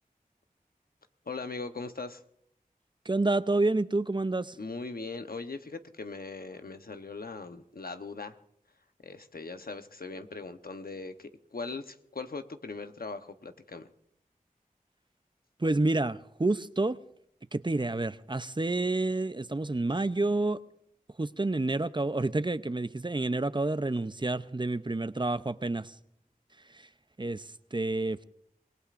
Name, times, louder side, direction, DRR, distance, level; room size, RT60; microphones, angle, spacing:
voice 1, 1.3-2.2 4.6-8.4 9.0-13.9, left 3 dB, 85° left, 0.9 m, -40 dB
voice 2, 3.1-4.6 15.6-17.0 17.5-20.6 21.2-25.9 27.2-28.2, right 2 dB, 30° right, 0.6 m, -29 dB
26.5 x 19.5 x 2.5 m
wide cardioid pair, 45°, 15 cm